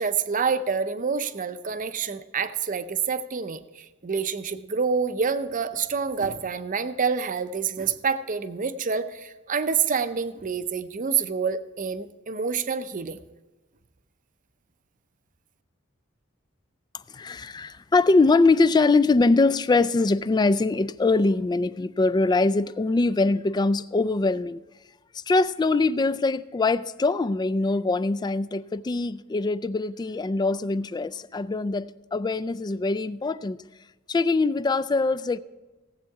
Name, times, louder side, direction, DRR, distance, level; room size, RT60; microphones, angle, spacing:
voice 1, 0.0-13.2, right 6 dB, 40° right, 11 dB, 0.6 m, -27 dB
voice 2, 16.9-24.6 25.1-33.7 34.1-35.4, left 3 dB, 20° left, 16 dB, 0.3 m, -23 dB
17.5 x 8.2 x 4.7 m, 1.2 s
head